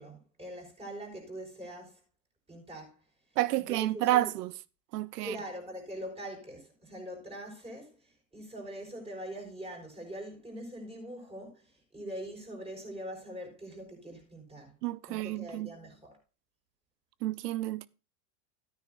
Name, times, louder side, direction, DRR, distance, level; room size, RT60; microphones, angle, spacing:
voice 1, 0.0-2.0 2.5-3.0 3.6-4.3 5.2-14.7 15.1-16.2, right 1 dB, 10° right, 4.7 m, -43 dB
voice 2, 3.4-4.5 4.9-5.4 14.8-15.7 17.2-17.9, right 15 dB, 80° right, 0.7 m, -30 dB
13.0 x 9.6 x 2.6 m
hypercardioid pair, 110°, 47 cm